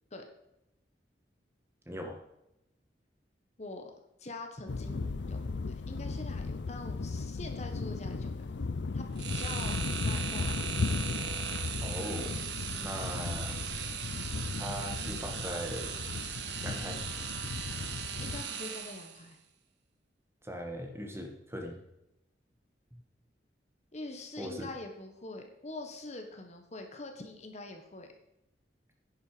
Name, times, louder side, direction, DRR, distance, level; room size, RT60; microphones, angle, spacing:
voice 1, 1.9-2.2 11.8-12.5 12.8-13.6 14.6-16.0 16.6-17.0 20.4-21.8 24.4-24.7, equal, 15° right, 2 dB, 1.9 m, -39 dB
voice 2, 3.6-3.9 4.2-5.4 5.9-8.6 8.9-9.0 9.3-10.6 12.7-12.9 18.2-19.4 23.9-28.1, left 2 dB, 40° left, 4 dB, 1.4 m, -44 dB
sound 1, 4.7-18.4, left 3 dB, 80° left, 0.6 m, -36 dB
sound 2, 9.2-19.3, right 7 dB, 75° right, 1.4 m, -38 dB
10.5 x 9.9 x 5.1 m, 0.87 s
head